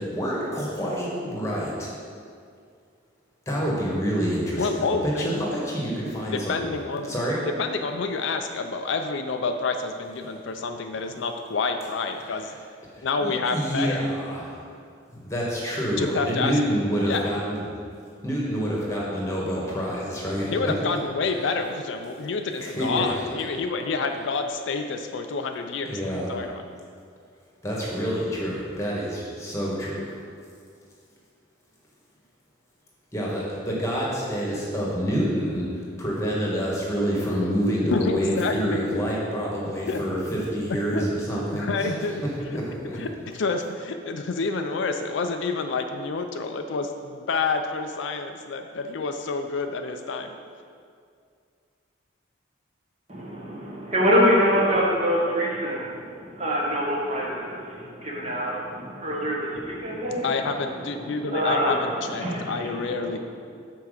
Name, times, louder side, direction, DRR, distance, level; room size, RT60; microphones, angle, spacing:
voice 1, 0.0-1.9 3.5-6.6 7.1-7.4 12.2-12.4 13.2-14.5 15.2-17.6 18.2-20.5 21.3-21.4 22.6-23.1 25.8-26.3 27.6-30.0 33.1-35.6 36.0-41.9 42.5-43.0, equal, 15° left, -5 dB, 1.4 m, -27 dB
voice 2, 4.6-5.4 6.2-7.2 7.6-12.5 13.0-14.0 16.0-16.6 17.0-17.3 20.5-26.6 37.9-39.0 39.9-40.0 40.9-41.1 41.5-42.2 42.9-50.3 60.2-63.2, left 4 dB, 65° left, 6 dB, 0.4 m, -28 dB
voice 3, 53.1-56.0 56.4-60.3 61.2-61.8 62.2-63.1, equal, 35° right, -4 dB, 1.3 m, -25 dB
5.8 x 4.6 x 6.4 m, 2.3 s
head